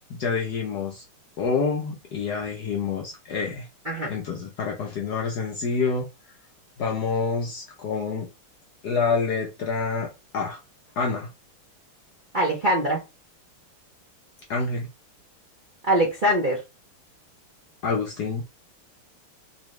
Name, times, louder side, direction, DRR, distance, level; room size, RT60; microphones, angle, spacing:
voice 1, 0.1-1.0 1.4-3.7 4.1-6.1 6.8-8.3 8.8-10.6 11.0-11.3 14.5-14.9 17.8-18.4, left 5 dB, 65° left, 1.0 m, -27 dB
voice 2, 12.3-13.0 15.8-16.6, right 1 dB, 45° right, 0.6 m, -22 dB
3.9 x 2.7 x 3.1 m
omnidirectional pair, 2.4 m